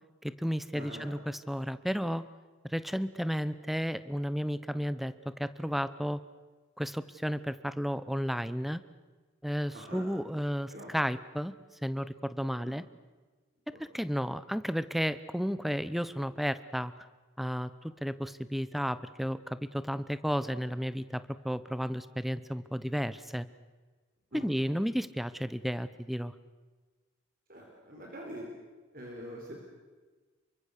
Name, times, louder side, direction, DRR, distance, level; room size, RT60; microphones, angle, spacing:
voice 1, 0.2-2.2 2.7-6.2 6.8-8.8 9.4-11.5 11.8-12.8 13.7-16.9 17.4-23.5 24.3-26.3, equal, ahead, 14 dB, 0.8 m, -33 dB
voice 2, 0.7-1.1 9.7-10.1 10.7-10.9 12.6-12.7 13.7-13.8 14.3-14.4 24.3-24.5 27.5-28.5 28.9-29.7, equal, 45° right, 0 dB, 4.3 m, -44 dB
28.5 x 24.0 x 6.7 m, 1.3 s
head